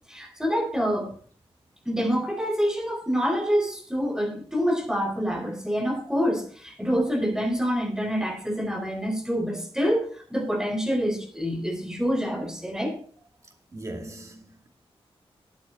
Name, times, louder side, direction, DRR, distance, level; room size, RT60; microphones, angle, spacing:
voice 1, 0.1-1.1 1.9-13.0, equal, 5° right, 3.8 m, -26 dB
voice 2, 13.7-14.7, right 1 dB, 30° right, 2.5 m, -39 dB
13.0 x 8.6 x 3.8 m
wide cardioid pair, 150°, 10 cm